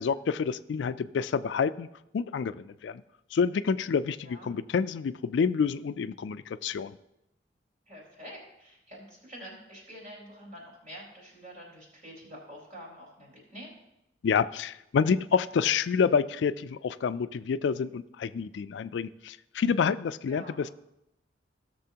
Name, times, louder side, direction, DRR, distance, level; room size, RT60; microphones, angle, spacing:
voice 1, 0.0-1.9 2.1-3.0 3.3-7.0 14.2-20.7, left 6 dB, 75° left, 15 dB, 0.3 m, -28 dB
voice 2, 4.2-4.5 7.9-13.7 20.3-20.6, equal, 45° right, -2 dB, 4.1 m, -47 dB
16.5 x 6.7 x 2.9 m, 0.87 s
head